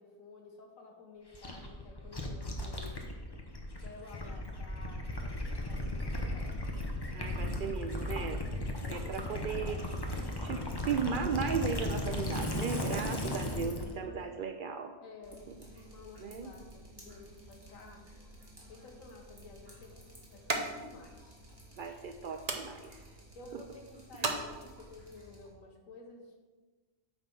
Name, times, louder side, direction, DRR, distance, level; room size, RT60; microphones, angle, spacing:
voice 1, 0.0-3.0 3.8-6.5 8.8-9.1 12.8-14.3 15.0-18.1 18.7-19.9 20.3-21.4 23.3-26.5, left 2 dB, 70° left, 2 dB, 1.6 m, -52 dB
Gurgling / Liquid, 1.3-13.9, left 1 dB, 20° left, 0.8 m, -36 dB
voice 2, 7.1-8.4 8.9-14.9 16.2-16.5 21.8-23.0 24.2-24.3, right 6 dB, 85° right, 6 dB, 0.4 m, -36 dB
Drip, 15.2-25.5, equal, 15° right, 1.9 m, -55 dB
sound 1, 18.8-25.1, right 3 dB, 35° right, 0.7 m, -41 dB
9.0 x 4.1 x 6.0 m, 1.3 s
omnidirectional pair, 1.4 m